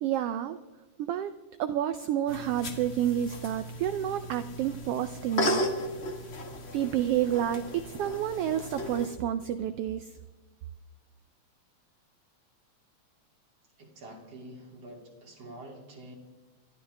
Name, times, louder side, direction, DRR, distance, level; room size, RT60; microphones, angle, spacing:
voice 1, 0.0-0.6 1.0-1.3 1.6-5.6 6.7-10.1, right 11 dB, 85° right, 11 dB, 1.3 m, -29 dB
sound 1, 2.3-9.1, left 1 dB, 45° left, 0.8 m, -35 dB
voice 2, 13.8-16.2, right 1 dB, 60° right, -1 dB, 3.7 m, -47 dB
27.5 x 12.5 x 3.4 m, 1.2 s
omnidirectional pair, 3.3 m